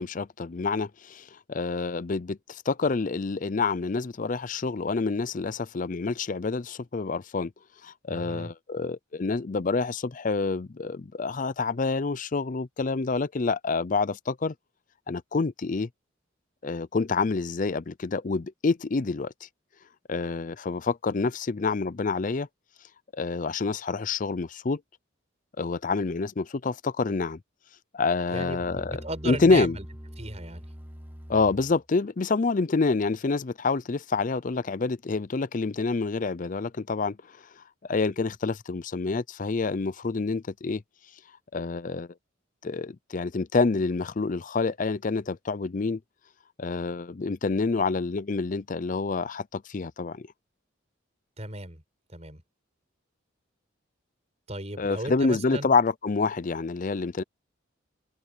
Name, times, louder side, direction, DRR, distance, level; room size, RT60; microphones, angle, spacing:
voice 1, 0.0-7.5 7.8-14.5 15.1-15.9 16.6-19.5 20.1-22.5 23.1-24.8 25.6-27.4 27.9-29.8 31.3-37.2 37.6-37.7 37.9-40.8 41.5-42.1 42.6-46.0 46.6-50.3 54.8-57.2, left 4 dB, 40° left, 0.5 m, -27 dB
voice 2, 8.1-8.5 28.3-29.8 30.2-30.6 51.4-51.8 52.1-52.4 54.5-55.7, right 2 dB, 35° right, 5.7 m, -36 dB
Musical instrument, 28.3-31.9, equal, 10° right, 1.6 m, -43 dB
head